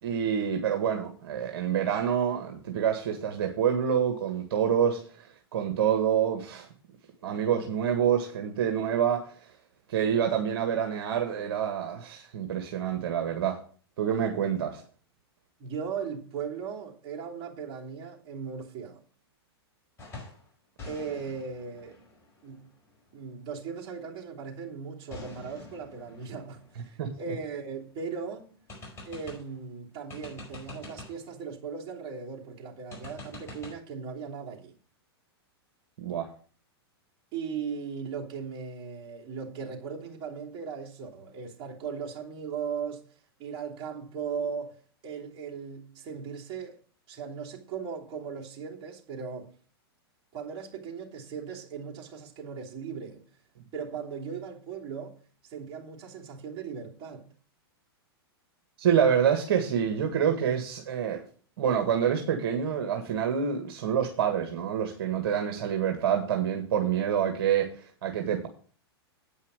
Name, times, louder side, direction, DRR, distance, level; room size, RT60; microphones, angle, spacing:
voice 1, 0.0-6.7 7.2-9.3 9.9-13.6 14.0-14.8 27.0-27.1 36.0-36.3 58.8-61.2 61.6-68.5, right 8 dB, 65° right, 1.7 m, -27 dB
voice 2, 15.6-19.0 20.8-22.0 22.4-22.7 23.1-28.5 29.0-34.7 37.3-43.1 43.4-46.8 47.1-49.5 50.3-53.2 53.7-55.2 55.5-57.3, right 6 dB, 35° right, 3.1 m, -38 dB
sound 1, 20.0-20.5 20.8-23.4 25.1-27.8 28.2-28.3 28.7-29.6 30.1-31.3 32.9-33.7, left 2 dB, 20° left, 5.2 m, -46 dB
9.1 x 5.6 x 6.4 m
hypercardioid pair, 125°, 13 cm